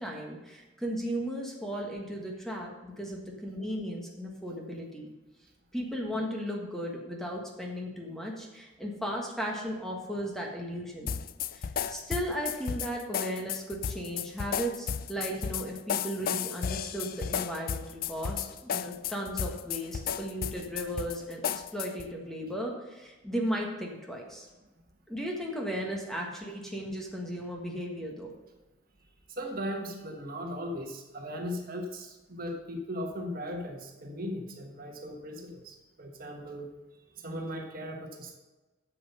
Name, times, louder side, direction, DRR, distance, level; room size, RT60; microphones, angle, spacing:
voice 1, 0.0-5.1 5.7-11.2 11.5-24.5 25.1-28.3, equal, ahead, -1 dB, 1.5 m, -36 dB
sound 1, 11.1-22.1, left 8 dB, 45° left, 0.3 m, -34 dB
voice 2, 29.3-36.7 37.2-38.4, equal, 45° right, 2 dB, 1.3 m, -38 dB
9.1 x 7.4 x 5.6 m, 1.1 s
head